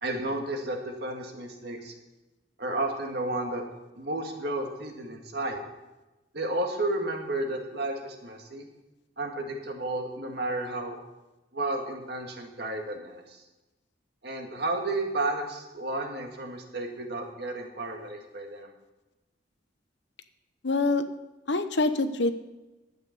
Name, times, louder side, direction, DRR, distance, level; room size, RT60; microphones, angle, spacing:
voice 1, 0.0-1.9 2.6-3.6 4.0-5.6 6.3-8.7 9.2-11.0 11.5-13.4 14.2-18.7, right 2 dB, 60° right, 3 dB, 2.0 m, -32 dB
voice 2, 20.6-21.1 21.5-22.3, left 2 dB, 70° left, 10 dB, 0.9 m, -25 dB
12.0 x 8.7 x 6.7 m, 1.1 s
head